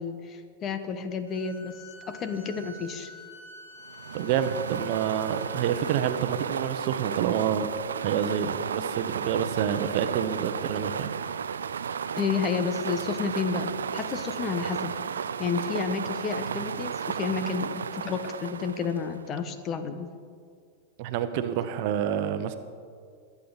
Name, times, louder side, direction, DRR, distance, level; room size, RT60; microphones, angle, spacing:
voice 1, 0.0-1.7 2.1-3.1 12.2-15.0 15.4-20.1, left 5 dB, 35° left, 9 dB, 1.2 m, -31 dB
sound 1, 1.3-7.0, left 1 dB, 70° left, 3.6 m, -48 dB
sound 2, 3.9-19.3, right 7 dB, 90° right, 0.4 m, -33 dB
voice 2, 4.1-7.7 8.0-11.1 21.0-22.6, right 9 dB, 55° right, 10 dB, 0.9 m, -28 dB
21.5 x 8.5 x 4.1 m, 2.1 s
hypercardioid pair, 110°, 0 cm